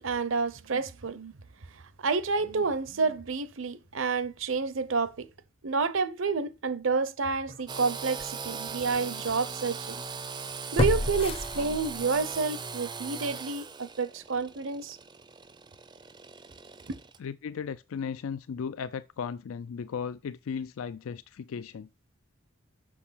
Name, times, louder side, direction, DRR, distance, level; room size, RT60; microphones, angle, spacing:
voice 1, 0.0-1.3 2.0-5.3 5.6-10.0 10.7-15.0, right 4 dB, 65° right, 0.7 m, -29 dB
sound 1, 7.5-7.6 8.2-8.3 10.8-12.2 12.6-12.7, left 1 dB, 25° left, 0.6 m, -29 dB
Engine / Sawing, 7.7-17.2, right 5 dB, 20° right, 0.5 m, -39 dB
voice 2, 17.2-21.9, left 6 dB, 80° left, 0.4 m, -36 dB
6.4 x 6.1 x 5.7 m
head